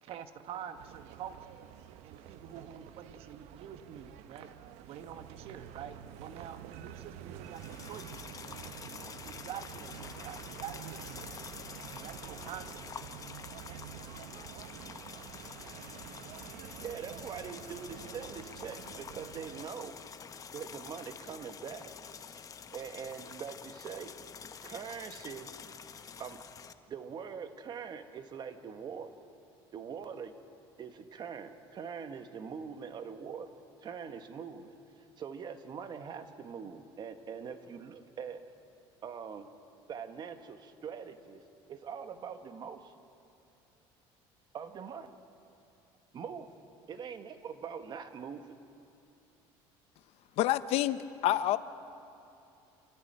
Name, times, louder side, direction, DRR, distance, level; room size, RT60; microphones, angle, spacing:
voice 1, 0.0-1.5 2.0-4.5 4.9-11.4 11.9-13.1, right 9 dB, 60° right, 9 dB, 1.3 m, -47 dB
sound 1, 0.7-19.7, right 10 dB, 75° right, 1.0 m, -48 dB
sound 2, 7.5-26.7, left 6 dB, 30° left, 1.0 m, -48 dB
voice 2, 16.7-20.0 20.5-21.9 22.7-24.2 24.6-25.5 26.2-26.4 26.9-29.1 29.7-30.4 30.8-33.5 33.8-38.4 39.0-39.5 39.9-43.0 44.5-45.1 46.1-46.5 46.9-48.6, right 6 dB, 40° right, 8 dB, 1.6 m, -43 dB
voice 3, 50.4-51.6, left 13 dB, 65° left, 14 dB, 0.8 m, -28 dB
28.5 x 14.0 x 9.0 m, 2.8 s
cardioid pair, 125°, 11 cm